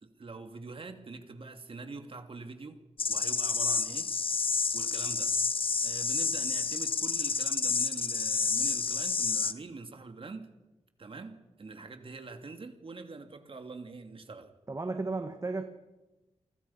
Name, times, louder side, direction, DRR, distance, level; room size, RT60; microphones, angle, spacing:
voice 1, 0.0-2.8 3.1-4.1 4.7-5.3 5.8-10.5 11.0-14.5, right 3 dB, 50° right, 2.6 m, -44 dB
sound 1, 3.0-9.5, left 5 dB, 50° left, 1.2 m, -29 dB
voice 2, 14.7-15.6, right 3 dB, 30° right, 1.8 m, -33 dB
29.0 x 25.5 x 5.8 m
wide cardioid pair, 135°, 12 cm